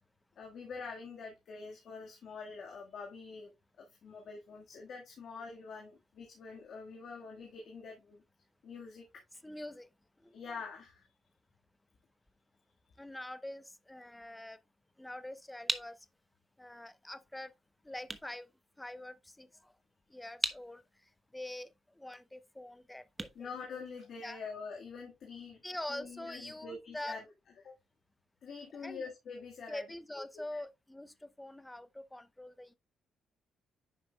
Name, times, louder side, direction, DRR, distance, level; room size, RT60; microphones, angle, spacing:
voice 1, 0.4-3.5 3.8-8.2 8.6-9.2 10.3-11.1 23.4-25.6 25.9-27.2 27.6-27.7 28.4-29.8 30.5-30.6, left 4 dB, 65° left, 1.8 m, -45 dB
voice 2, 9.4-9.9 10.2-10.4 13.0-14.6 15.0-16.0 16.6-17.5 17.8-18.5 18.8-19.7 20.1-20.8 21.3-23.8 24.2-24.4 25.6-27.2 28.8-29.1 29.7-32.8, left 1 dB, 10° left, 0.8 m, -45 dB
sound 1, 15.0-24.4, right 2 dB, 20° right, 1.1 m, -43 dB
9.8 x 6.2 x 2.3 m
supercardioid pair, 60°, 0 cm